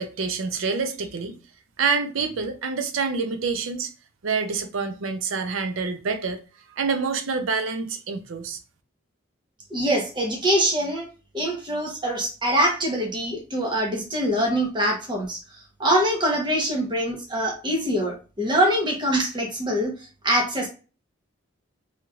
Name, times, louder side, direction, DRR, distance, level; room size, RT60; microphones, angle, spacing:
voice 1, 0.0-1.4 1.8-3.9 4.2-6.4 6.7-8.6, right 5 dB, 75° right, 0.5 m, -27 dB
voice 2, 9.7-11.0 11.3-15.4 15.8-19.9 20.2-20.7, right 1 dB, 25° right, 0.8 m, -24 dB
3.1 x 2.9 x 2.3 m
head